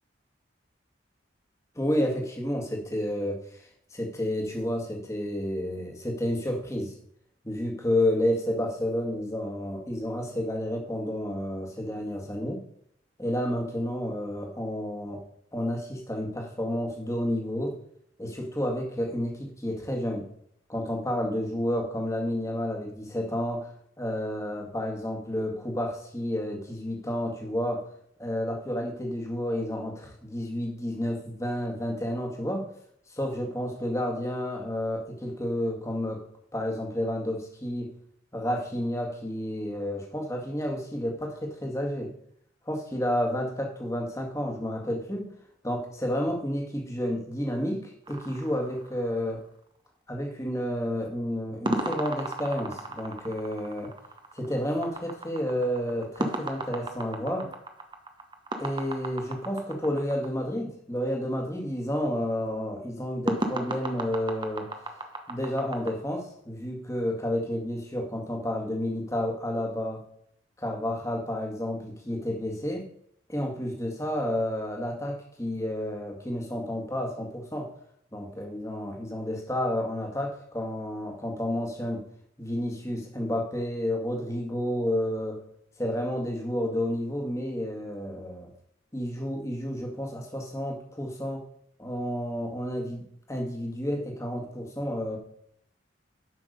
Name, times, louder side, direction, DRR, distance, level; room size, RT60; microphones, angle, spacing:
voice 1, 1.8-6.9 7.4-12.6 13.2-15.2 15.5-17.8 18.2-20.3 20.7-27.9 28.2-32.7 33.1-36.2 36.5-37.9 38.3-42.1 42.7-45.3 45.6-49.4 50.1-53.9 54.3-57.5 58.6-64.7 65.3-70.0 70.6-72.9 73.3-77.7 78.1-82.1 82.4-85.4 85.8-88.5 88.9-91.4 91.8-95.2, left 1 dB, 15° left, 2 dB, 1.8 m, -30 dB
sound 1, 48.1-49.5 51.7-60.3 63.3-65.9, right 1 dB, 25° right, 1.0 m, -34 dB
11.0 x 5.9 x 5.2 m, 0.67 s
head